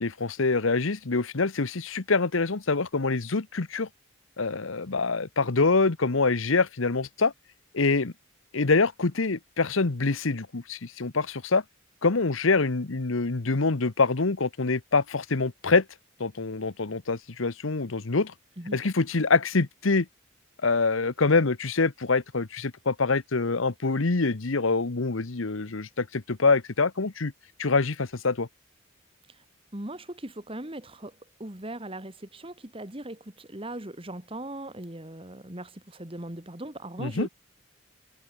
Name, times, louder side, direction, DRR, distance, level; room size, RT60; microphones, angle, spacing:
voice 1, 0.0-3.9 4.4-7.3 7.7-8.1 8.5-11.6 12.0-15.8 16.2-18.3 18.7-20.1 20.6-27.3 27.6-28.5 37.0-37.3, left 3 dB, 75° left, 1.1 m, -25 dB
voice 2, 29.7-37.3, right 1 dB, 25° right, 2.1 m, -39 dB
head